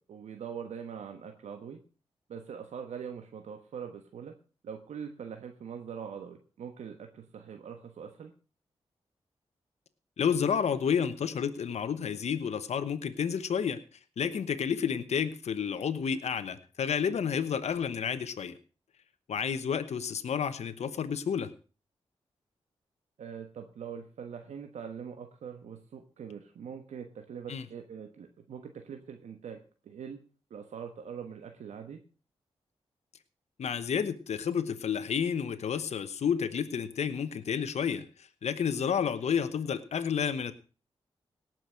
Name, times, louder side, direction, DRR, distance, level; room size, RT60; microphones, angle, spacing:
voice 1, 0.1-1.8 2.3-4.3 4.6-8.3 17.0-17.1 23.2-30.2 30.5-32.0, right 7 dB, 85° right, 5 dB, 1.2 m, -43 dB
voice 2, 10.2-13.8 14.2-18.6 19.3-21.5 27.5-27.6 33.6-40.5, left 7 dB, 75° left, 10 dB, 1.0 m, -30 dB
18.0 x 6.2 x 6.3 m, 0.37 s
cardioid pair, 50°, 11 cm